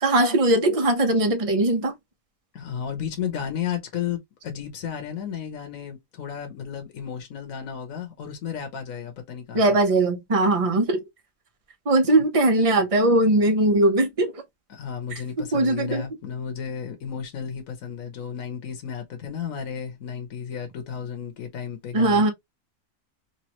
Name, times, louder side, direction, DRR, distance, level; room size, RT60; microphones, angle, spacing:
voice 1, 0.0-1.9 9.5-11.0 11.9-14.3 15.4-16.1 21.9-22.3, right 2 dB, 30° right, 0.8 m, -20 dB
voice 2, 2.5-9.8 12.2-12.3 14.7-22.2, left 8 dB, 75° left, 1.3 m, -33 dB
3.3 x 3.1 x 2.9 m
omnidirectional pair, 1.4 m